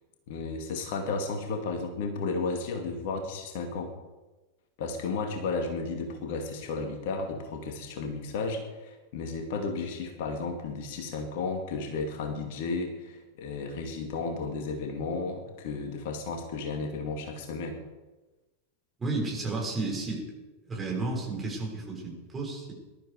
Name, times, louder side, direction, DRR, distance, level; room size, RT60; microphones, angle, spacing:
voice 1, 0.3-3.9 4.8-17.8, left 4 dB, 50° left, 4 dB, 2.3 m, -33 dB
voice 2, 19.0-20.2 20.6-22.7, right 3 dB, 15° right, -2 dB, 6.2 m, -32 dB
21.0 x 12.5 x 5.1 m, 1.1 s
figure-of-eight pair, 90°, 0 cm